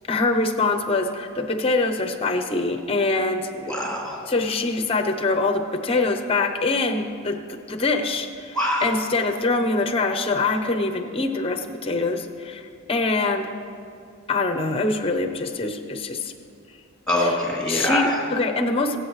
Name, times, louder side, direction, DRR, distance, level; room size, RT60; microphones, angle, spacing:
voice 1, 0.1-3.5 4.3-13.5 14.3-16.3 17.2-17.3 17.7-19.0, left 3 dB, 30° left, 6 dB, 0.8 m, -24 dB
voice 2, 3.6-4.2 8.5-8.9 17.1-18.2, left 1 dB, 5° left, -3 dB, 2.7 m, -24 dB
23.5 x 8.1 x 3.2 m, 2.4 s
head